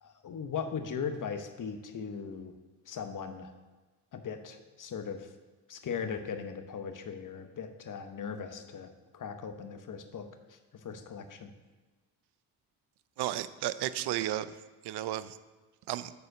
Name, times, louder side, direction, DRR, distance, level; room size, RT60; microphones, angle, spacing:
voice 1, 0.0-2.5 2.9-3.5 4.1-5.3 5.7-11.5, left 6 dB, 50° left, 8 dB, 1.0 m, -39 dB
voice 2, 13.2-14.6 14.8-15.4 15.9-16.1, right 13 dB, 70° right, 15 dB, 0.6 m, -33 dB
6.8 x 4.3 x 6.5 m, 1.3 s
supercardioid pair, 60°, 42 cm